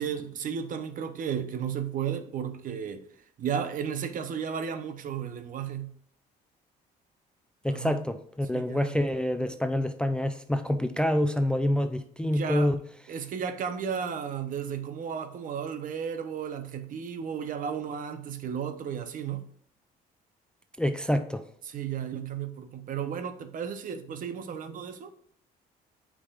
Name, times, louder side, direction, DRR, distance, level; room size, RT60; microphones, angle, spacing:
voice 1, 0.0-3.0 3.4-5.9 7.7-8.0 8.5-9.0 12.2-12.7 13.1-19.5 21.6-25.1, right 7 dB, 55° right, 0.9 m, -34 dB
voice 2, 7.6-12.8 20.8-21.5, left 1 dB, 5° left, 0.4 m, -27 dB
8.6 x 5.0 x 2.5 m
cardioid pair, 110°, 17 cm